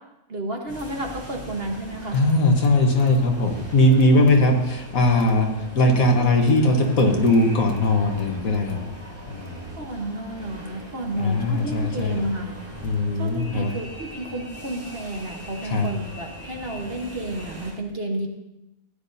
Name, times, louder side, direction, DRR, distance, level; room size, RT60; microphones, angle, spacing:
voice 1, 0.3-2.2 3.9-4.3 9.8-12.5 13.1-18.3, right 1 dB, 45° right, 2 dB, 1.4 m, -31 dB
sound 1, 0.7-17.7, equal, 10° right, 3.7 m, -41 dB
voice 2, 2.1-8.9 9.3-9.7 11.2-12.2 12.8-13.7 15.6-15.9, left 1 dB, 70° left, 2 dB, 1.7 m, -20 dB
15.0 x 10.0 x 2.7 m, 0.91 s
omnidirectional pair, 1.5 m